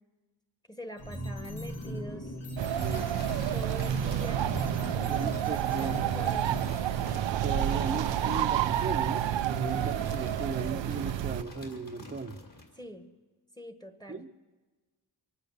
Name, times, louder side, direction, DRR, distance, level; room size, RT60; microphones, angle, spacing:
voice 1, 0.7-2.4 3.5-6.6 12.7-13.1 13.6-14.2, equal, 10° left, 8 dB, 1.1 m, -45 dB
sound 1, 1.0-6.8, equal, 75° left, 2.4 m, -39 dB
sound 2, 2.6-11.4, right 11 dB, 80° right, 0.5 m, -29 dB
sound 3, 2.7-12.8, left 1 dB, 50° left, 2.6 m, -46 dB
voice 2, 2.7-3.1 5.1-6.0 7.4-12.4 14.1-14.3, right 3 dB, 25° right, 2 dB, 0.7 m, -36 dB
23.5 x 8.5 x 6.8 m, 1.3 s
cardioid pair, 50°, 43 cm